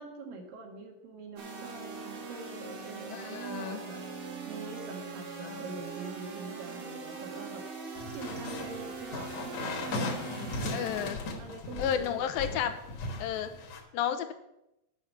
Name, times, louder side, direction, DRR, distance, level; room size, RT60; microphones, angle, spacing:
voice 1, 0.0-4.1 4.5-12.2 13.2-13.4, right 4 dB, 75° right, 2 dB, 3.3 m, -45 dB
sound 1, 1.4-11.1, right 4 dB, 50° right, 1.8 m, -41 dB
voice 2, 3.1-3.8 5.4-5.6 10.7-11.2 11.8-12.7 13.2-13.5 13.9-14.3, left 9 dB, 85° left, 9 dB, 2.5 m, -32 dB
sound 2, 7.9-13.8, left 2 dB, 60° left, 2.5 m, -37 dB
9.6 x 6.0 x 7.2 m, 0.87 s
omnidirectional pair, 4.1 m